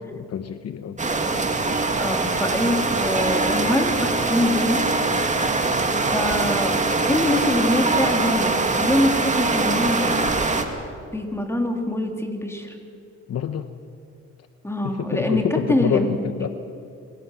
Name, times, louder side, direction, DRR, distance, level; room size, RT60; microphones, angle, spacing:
voice 1, 0.1-1.0 13.3-13.7 14.8-16.5, left 8 dB, 55° left, 10 dB, 1.0 m, -27 dB
sound 1, 1.0-10.6, right 3 dB, 25° right, 2.2 m, -22 dB
voice 2, 2.0-4.8 6.1-6.8 7.1-10.2 11.1-12.7 14.6-15.4 15.7-16.1, left 1 dB, 10° left, 3 dB, 3.5 m, -24 dB
26.5 x 17.5 x 7.6 m, 2.4 s
cardioid pair, 90°, 30 cm